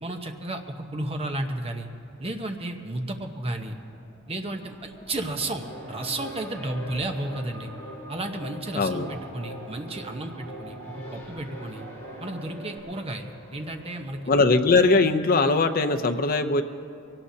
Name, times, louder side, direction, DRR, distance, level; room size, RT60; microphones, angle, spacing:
voice 1, 0.0-1.9 2.2-3.7 4.3-7.7 8.1-11.8 12.2-14.2, right 1 dB, 30° right, 4 dB, 1.0 m, -33 dB
Race car auto racing, 1.2-15.2, equal, 15° left, 3.6 m, -49 dB
sound 1, 5.4-12.8, right 2 dB, 70° right, 1.9 m, -45 dB
Singing, 5.6-12.4, equal, 85° left, 3.4 m, -45 dB
voice 2, 8.8-9.1 14.3-16.6, left 3 dB, 45° left, 7 dB, 0.7 m, -20 dB
23.5 x 17.5 x 2.8 m, 2.5 s
head